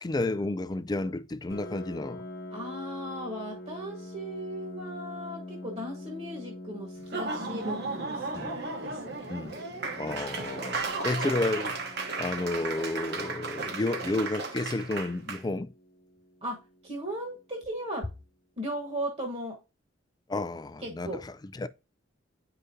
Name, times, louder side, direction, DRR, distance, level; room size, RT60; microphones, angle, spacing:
voice 1, 0.0-2.2 8.3-8.5 9.3-9.6 10.0-11.8 12.2-15.7 20.3-21.7, left 2 dB, 20° left, 0.3 m, -31 dB
Piano, 1.5-16.9, left 1 dB, 50° left, 0.9 m, -45 dB
voice 2, 2.5-9.3 16.4-16.6 16.8-18.1 18.6-19.6 20.8-21.2, right 1 dB, 30° right, 1.3 m, -37 dB
Laughter / Applause, 7.0-15.4, right 3 dB, 55° right, 1.2 m, -34 dB
9.7 x 5.0 x 2.8 m
head